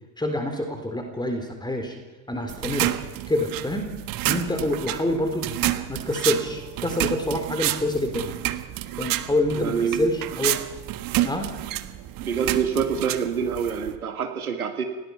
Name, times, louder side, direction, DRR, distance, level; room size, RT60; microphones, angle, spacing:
voice 1, 0.2-2.0 2.3-2.9 3.3-3.9 4.2-8.4 9.0-10.6 11.2-11.6, left 1 dB, 10° left, 5 dB, 3.9 m, -27 dB
sound 1, 2.5-14.0, right 15 dB, 50° right, 1.4 m, -29 dB
voice 2, 9.6-10.0 12.2-14.8, right 7 dB, 85° right, 6 dB, 2.0 m, -26 dB
27.0 x 18.0 x 5.9 m, 1.2 s
figure-of-eight pair, 65°, 43 cm